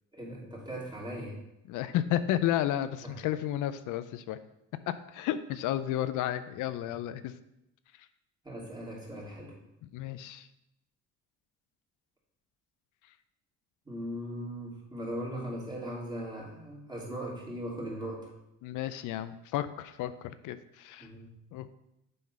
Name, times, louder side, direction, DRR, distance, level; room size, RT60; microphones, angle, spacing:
voice 1, 0.1-1.4 3.0-3.1 8.4-9.6 13.9-18.3 21.0-21.3, equal, 15° right, -4 dB, 2.7 m, -39 dB
voice 2, 1.7-4.4 4.9-7.3 9.9-10.5 18.6-21.1 21.5-21.8, left 12 dB, 90° left, 12 dB, 0.5 m, -32 dB
7.5 x 3.8 x 5.4 m, 0.84 s
cardioid pair, 90°, 30 cm